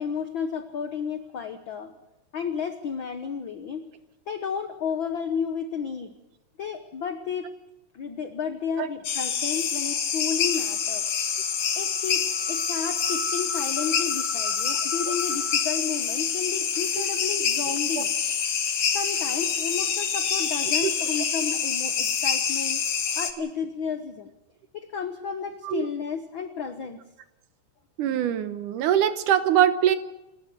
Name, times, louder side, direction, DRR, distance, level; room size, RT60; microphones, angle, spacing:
voice 1, 0.0-1.9 2.3-3.8 4.3-6.1 6.6-7.5 7.9-11.1 11.7-18.1 18.9-22.8 23.1-24.3 24.7-27.0, left 6 dB, 80° left, 8 dB, 1.1 m, -32 dB
Peruvian Amazon birds frogs daytime, 9.0-23.3, left 7 dB, 50° left, 1.8 m, -26 dB
voice 2, 28.0-30.0, right 10 dB, 70° right, 11 dB, 2.4 m, -23 dB
28.0 x 13.5 x 7.8 m, 0.94 s
omnidirectional pair, 3.9 m